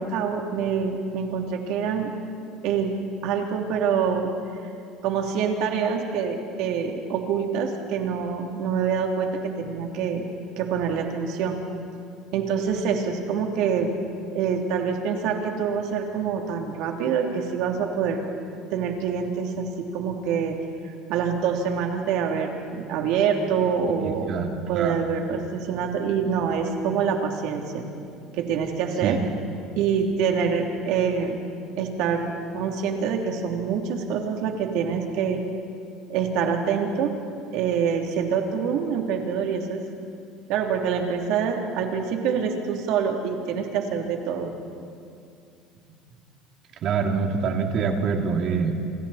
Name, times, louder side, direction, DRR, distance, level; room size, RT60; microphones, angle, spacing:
voice 1, 0.0-2.1 2.6-3.0 3.2-4.3 5.0-10.3 10.6-11.6 12.3-13.9 14.3-18.2 18.7-20.6 21.1-24.3 24.7-27.8 28.3-29.2 29.8-31.4 31.8-35.4 36.1-37.1 37.5-39.8 40.5-44.5, right 6 dB, 65° right, 2 dB, 2.9 m, -26 dB
voice 2, 24.0-25.0 29.0-29.2 46.8-48.8, right 5 dB, 45° right, 3 dB, 2.5 m, -25 dB
28.0 x 26.5 x 4.2 m, 2.4 s
cardioid pair, 135°, 0 cm